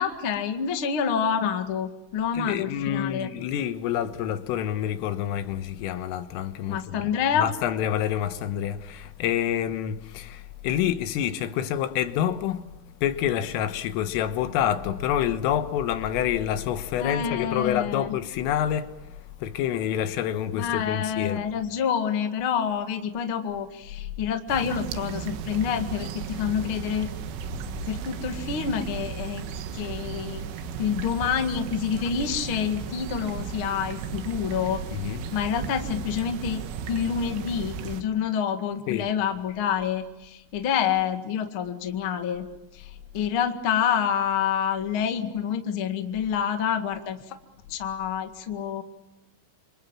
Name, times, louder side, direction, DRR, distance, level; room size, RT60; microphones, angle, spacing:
voice 1, 0.0-3.3 6.7-7.5 17.0-18.2 20.5-27.1 27.9-29.5 29.7-30.4 30.8-34.8 35.3-42.5 42.7-47.4 47.7-48.8, left 8 dB, 55° left, 1.5 m, -27 dB
voice 2, 2.3-7.1 7.4-12.6 13.0-21.4 27.7-27.8 34.9-35.2 38.9-39.1, left 10 dB, 85° left, 3.9 m, -27 dB
sound 1, 24.5-38.0, right 7 dB, 80° right, 3.9 m, -35 dB
27.5 x 26.0 x 7.4 m
omnidirectional pair, 5.7 m